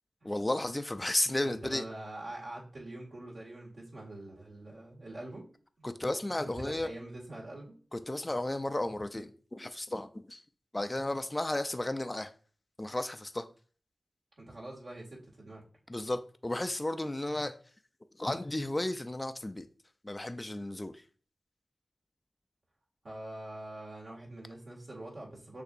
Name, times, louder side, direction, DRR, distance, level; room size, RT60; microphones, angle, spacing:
voice 1, 0.2-1.8 5.8-6.9 7.9-10.4 10.7-12.3 12.8-13.5 15.9-17.6 18.2-19.7 20.0-21.0, left 1 dB, 20° left, 0.3 m, -33 dB
voice 2, 1.4-5.4 5.8-5.9 6.6-7.7 14.4-15.6 23.0-25.6, right 1 dB, 60° right, 2.0 m, -44 dB
6.6 x 2.6 x 2.5 m
wide cardioid pair, 65°, 0 cm